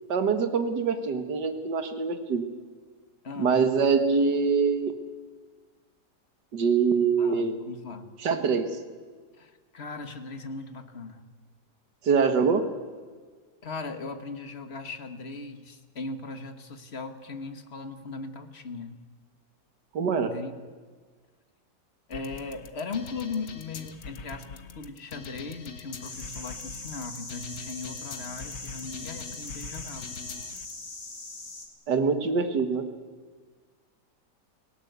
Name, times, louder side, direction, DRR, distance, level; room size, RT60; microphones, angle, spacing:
voice 1, 0.1-2.5 3.4-4.9 6.5-7.5 8.2-8.7 12.0-12.6 19.9-20.3 31.9-32.8, right 5 dB, 75° right, 8 dB, 2.2 m, -24 dB
voice 2, 3.2-3.6 7.2-8.1 9.4-11.2 13.6-19.0 20.1-20.8 22.1-30.2, left 3 dB, 40° left, 8 dB, 1.8 m, -38 dB
sound 1, 22.1-30.7, left 5 dB, 75° left, 2.0 m, -43 dB
sound 2, 26.0-31.7, left 3 dB, 60° left, 3.6 m, -41 dB
29.0 x 18.0 x 8.2 m, 1.5 s
omnidirectional pair, 1.8 m